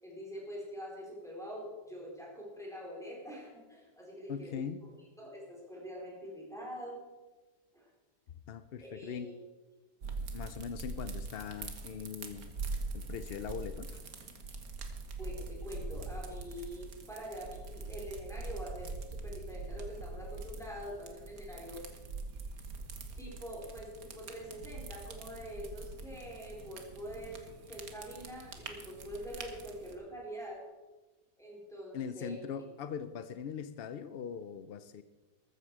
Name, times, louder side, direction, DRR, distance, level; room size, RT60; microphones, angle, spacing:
voice 1, 0.0-4.9 5.2-7.0 7.7-7.9 8.8-9.3 15.2-21.8 23.2-30.6 31.4-32.3, equal, ahead, -3 dB, 4.3 m, -45 dB
voice 2, 4.3-4.8 8.5-9.3 10.3-12.5 12.9-14.0 31.9-35.0, left 7 dB, 65° left, 12 dB, 0.6 m, -41 dB
sound 1, 10.0-29.9, right 3 dB, 65° right, 1.8 m, -43 dB
14.0 x 13.5 x 4.8 m, 1.2 s
omnidirectional pair, 1.7 m